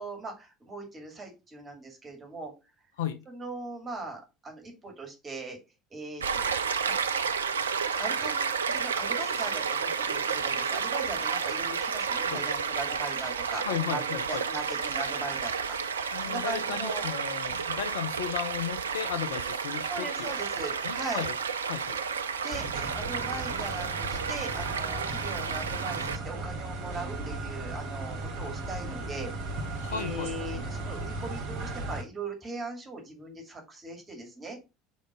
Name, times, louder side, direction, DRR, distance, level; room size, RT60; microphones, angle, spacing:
voice 1, 0.0-2.5 3.3-5.6 5.9-7.3 8.0-14.0 14.3-17.1 19.9-21.2 22.4-22.7 22.9-34.6, right 3 dB, 25° right, 2 dB, 2.3 m, -39 dB
Stream, 6.2-26.2, right 6 dB, 75° right, 0.4 m, -31 dB
voice 2, 13.7-14.4 16.1-20.3 20.8-21.3 21.7-22.0 29.8-30.3, left 9 dB, 65° left, 9 dB, 0.8 m, -34 dB
sound 1, 22.5-32.0, right 2 dB, 55° right, 1.3 m, -36 dB
5.1 x 4.2 x 5.2 m, 0.28 s
figure-of-eight pair, 70°, 0 cm